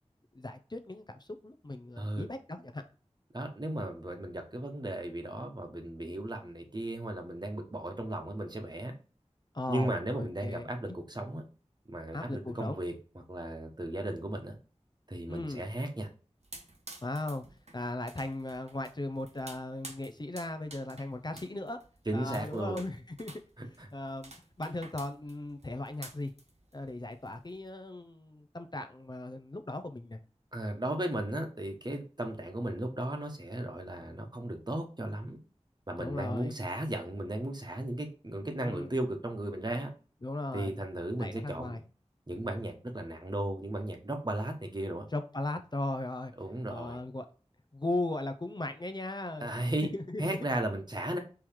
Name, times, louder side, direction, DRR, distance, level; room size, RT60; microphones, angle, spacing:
voice 1, 0.3-2.8 9.5-10.7 12.1-12.8 15.3-15.7 17.0-17.4 17.7-21.8 22.1-23.3 23.9-24.3 24.6-26.3 26.7-30.2 36.0-36.6 38.6-38.9 40.2-40.7 41.2-41.8 45.1-46.3 46.7-47.3 47.7-49.5 49.9-50.2, left 2 dB, 40° left, 7 dB, 0.5 m, -37 dB
voice 2, 2.0-2.3 3.3-8.9 9.7-11.4 11.9-12.9 13.3-14.6 15.1-16.1 22.1-22.8 23.6-23.9 30.5-35.4 35.9-39.9 40.5-41.8 42.3-45.0 46.4-47.0 49.4-49.9 50.2-51.2, right 1 dB, 40° right, 3 dB, 1.1 m, -35 dB
sound 1, 16.4-27.7, right 2 dB, 70° right, 1.0 m, -51 dB
4.6 x 3.1 x 3.5 m, 0.37 s
wide cardioid pair, 45°, 12 cm